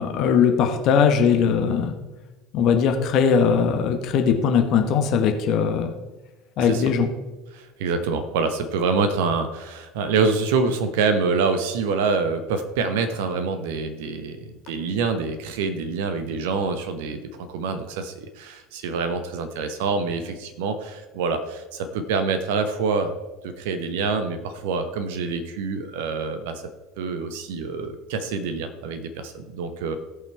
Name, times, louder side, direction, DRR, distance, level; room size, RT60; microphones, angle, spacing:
voice 1, 0.0-1.9 2.5-5.9 6.6-7.1, left 6 dB, 50° left, 5 dB, 1.2 m, -20 dB
voice 2, 7.5-23.1 23.4-26.6 27.0-30.0, right 4 dB, 60° right, 8 dB, 0.9 m, -26 dB
16.5 x 5.7 x 4.5 m, 1.1 s
figure-of-eight pair, 70°, 0 cm